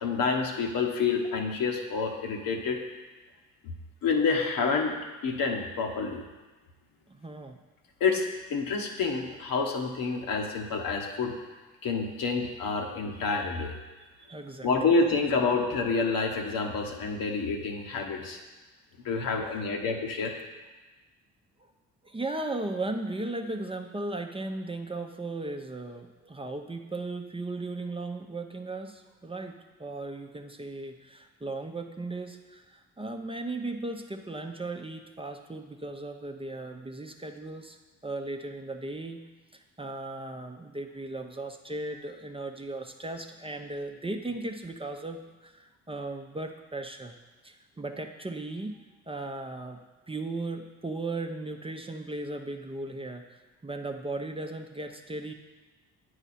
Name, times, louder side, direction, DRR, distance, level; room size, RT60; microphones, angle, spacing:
voice 1, 0.0-2.8 3.6-3.7 4.0-4.9 5.2-6.2 8.0-11.3 11.8-13.7 14.6-18.4 19.0-20.4, left 4 dB, 65° left, 2 dB, 1.2 m, -28 dB
voice 2, 7.1-7.6 14.3-14.7 19.2-19.6 22.0-37.8 38.0-39.2 39.5-47.1 47.4-48.8 49.1-49.8 50.1-55.3, right 2 dB, 15° right, 4 dB, 0.7 m, -37 dB
8.9 x 4.9 x 4.2 m, 1.2 s
hypercardioid pair, 55°, 36 cm